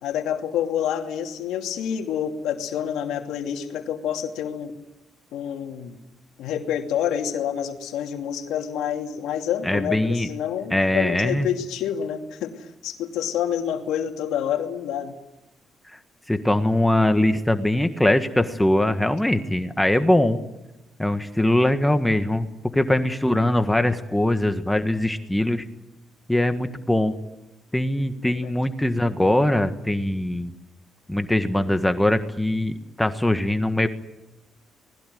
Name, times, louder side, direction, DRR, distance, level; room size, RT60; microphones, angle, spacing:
voice 1, 0.0-4.7 5.3-6.0 6.4-15.1 26.3-26.7 28.3-28.5, left 9 dB, 90° left, 4 dB, 2.7 m, -28 dB
voice 2, 9.6-10.3 10.7-11.5 16.3-20.4 21.0-22.5 22.7-25.6 26.3-27.1 27.7-30.5 31.1-33.9, left 1 dB, 5° left, 8 dB, 1.6 m, -21 dB
26.0 x 20.0 x 9.4 m, 0.92 s
cardioid pair, 90°, 0 cm